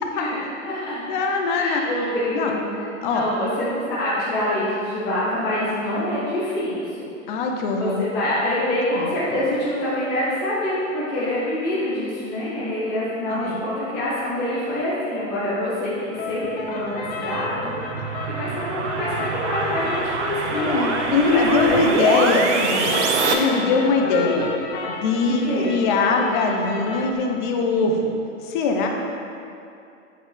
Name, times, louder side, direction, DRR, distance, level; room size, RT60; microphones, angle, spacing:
voice 1, 0.1-1.0 1.5-2.7 3.0-7.1 7.8-20.9 21.3-22.4 23.2-23.7 25.2-25.8, left 1 dB, 5° left, -10 dB, 0.3 m, -26 dB
voice 2, 1.1-1.8 2.3-2.5 3.0-3.3 7.3-8.0 9.0-9.1 13.3-13.6 20.5-23.0 23.3-24.5 25.0-25.4 25.7-28.2 28.4-28.9, left 4 dB, 40° left, 2 dB, 0.8 m, -21 dB
sound 1, 16.1-27.1, left 3 dB, 55° left, 1.1 m, -32 dB
sound 2, 16.8-23.3, right 4 dB, 60° right, 0.9 m, -26 dB
7.8 x 6.4 x 3.3 m, 2.6 s
hypercardioid pair, 150°, 39 cm